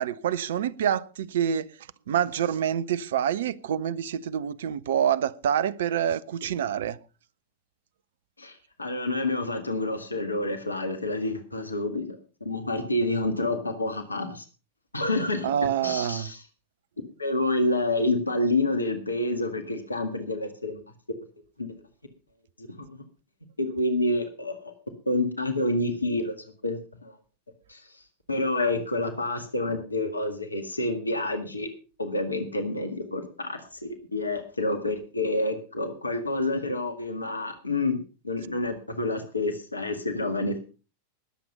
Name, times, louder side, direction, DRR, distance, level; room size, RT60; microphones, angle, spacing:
voice 1, 0.0-1.7 2.1-7.0 15.4-16.3, right 9 dB, 60° right, 0.7 m, -27 dB
voice 2, 8.4-14.4 14.9-15.5 15.8-16.4 17.2-20.8 21.6-21.7 22.6-22.9 23.6-24.7 25.1-26.4 26.6-27.1 27.7-28.0 28.3-31.7 32.0-38.0 38.2-40.6, left 2 dB, 80° left, 1.9 m, -28 dB
19.5 x 7.8 x 5.4 m
figure-of-eight pair, 90°, 0 cm